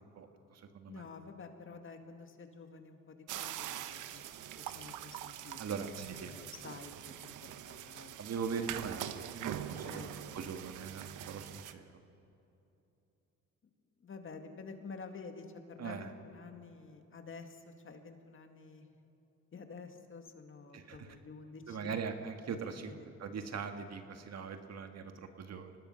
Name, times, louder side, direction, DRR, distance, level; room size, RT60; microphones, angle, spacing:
voice 1, 0.1-1.1 5.6-6.3 8.2-10.1 10.3-11.8 15.8-16.1 20.7-21.1 21.7-22.9 23.2-25.8, right 6 dB, 60° right, 6 dB, 1.7 m, -41 dB
voice 2, 0.9-4.3 4.6-5.9 6.3-7.3 7.7-8.1 9.8-10.6 14.0-18.9 19.5-22.0 23.0-23.1, left 4 dB, 40° left, 5 dB, 2.1 m, -50 dB
sound 1, 3.3-11.7, right 11 dB, 85° right, 1.0 m, -44 dB
24.5 x 19.0 x 5.7 m, 2.9 s
cardioid pair, 90°, 30 cm